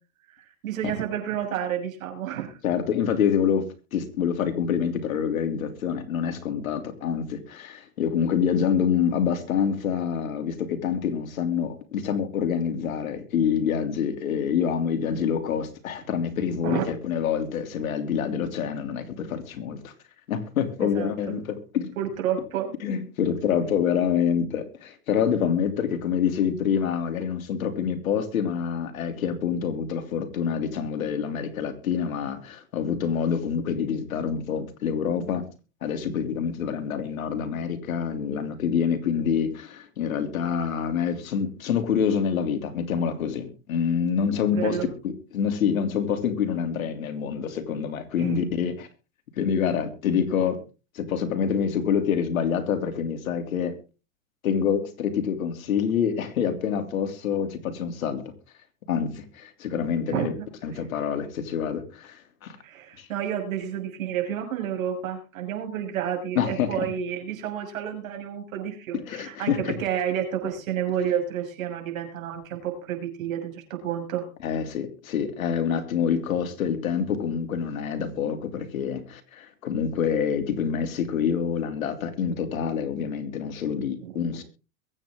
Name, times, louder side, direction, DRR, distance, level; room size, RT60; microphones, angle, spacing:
voice 1, 0.4-2.6 16.6-16.8 20.8-21.1 22.0-22.7 44.5-44.9 48.2-48.3 60.1-60.5 60.7-60.8 62.6-74.2 84.0-84.1, right 9 dB, 75° right, 6.6 m, -30 dB
voice 2, 2.6-19.9 20.3-21.9 22.8-35.4 35.8-48.9 49.4-50.6 50.9-53.7 54.4-58.2 58.9-60.3 60.6-62.6 63.0-63.1 66.3-66.9 69.1-69.8 74.4-84.4, left 7 dB, 80° left, 3.1 m, -26 dB
22.5 x 8.9 x 3.7 m
hypercardioid pair, 115°, 41 cm